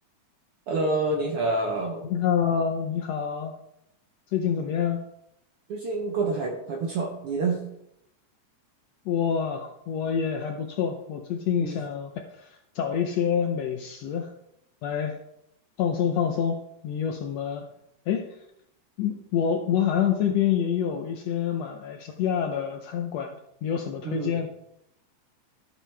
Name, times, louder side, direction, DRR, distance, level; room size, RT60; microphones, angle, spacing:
voice 1, 0.7-2.1 5.7-7.6 11.6-11.8 24.0-24.4, right 3 dB, 65° right, 2 dB, 1.4 m, -27 dB
voice 2, 2.1-3.5 4.3-5.0 9.0-12.1 12.4-14.3 14.8-15.2 15.8-17.7 18.1-18.3 19.0-24.5, left 8 dB, 75° left, 4 dB, 1.6 m, -27 dB
13.0 x 7.4 x 3.4 m, 0.80 s
omnidirectional pair, 3.6 m